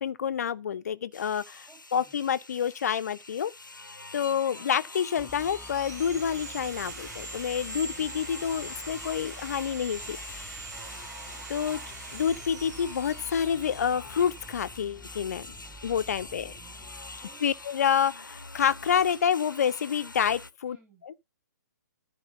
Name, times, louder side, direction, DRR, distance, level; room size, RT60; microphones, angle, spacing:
voice 1, 0.0-3.5 4.1-10.7 11.5-11.8 12.1-15.5 15.8-16.5 17.4-20.8, left 8 dB, 55° left, 0.9 m, -28 dB
sound 1, 1.1-20.5, left 3 dB, 90° left, 0.9 m, -45 dB
voice 2, 1.7-2.2 4.2-4.7 7.7-8.0 10.8-11.4 15.6-16.9 17.1-17.4 20.6-21.0, right 4 dB, 10° right, 4.9 m, -59 dB
Sawing, 4.8-14.6, right 3 dB, 60° right, 2.9 m, -43 dB
sound 2, 5.2-18.5, left 2 dB, 5° left, 1.5 m, -50 dB
13.0 x 4.7 x 5.8 m
figure-of-eight pair, 130°, 10 cm